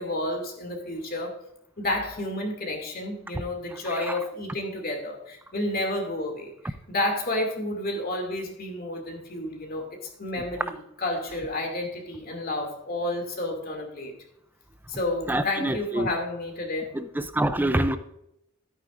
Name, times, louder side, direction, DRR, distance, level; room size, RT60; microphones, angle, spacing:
voice 1, 0.0-1.3 1.8-14.1 14.9-16.9, left 1 dB, 45° left, 2 dB, 2.5 m, -31 dB
voice 2, 15.3-16.1 16.9-18.0, right 1 dB, 10° right, 10 dB, 0.4 m, -26 dB
13.0 x 9.1 x 2.5 m, 0.78 s
head